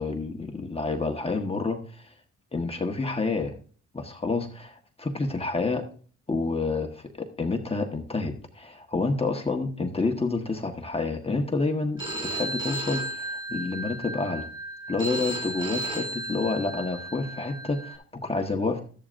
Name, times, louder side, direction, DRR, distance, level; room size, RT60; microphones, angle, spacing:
voice 1, 0.0-2.1 2.5-3.6 3.9-5.9 6.3-14.5 14.9-18.8, left 3 dB, 20° left, 3 dB, 1.4 m, -29 dB
Telephone, 12.0-18.0, right 1 dB, 15° right, 5.6 m, -34 dB
13.0 x 11.0 x 2.6 m, 0.43 s
cardioid pair, 90°, 30 cm